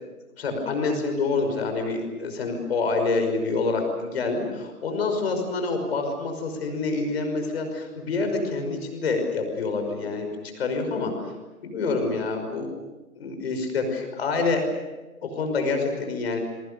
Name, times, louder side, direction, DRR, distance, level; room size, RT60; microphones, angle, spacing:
voice 1, 0.4-10.3 10.6-11.1 11.6-12.7 13.2-14.6 15.3-16.4, left 3 dB, 45° left, 5 dB, 5.7 m, -27 dB
28.5 x 23.5 x 6.9 m, 1.1 s
figure-of-eight pair, 135°, 45 cm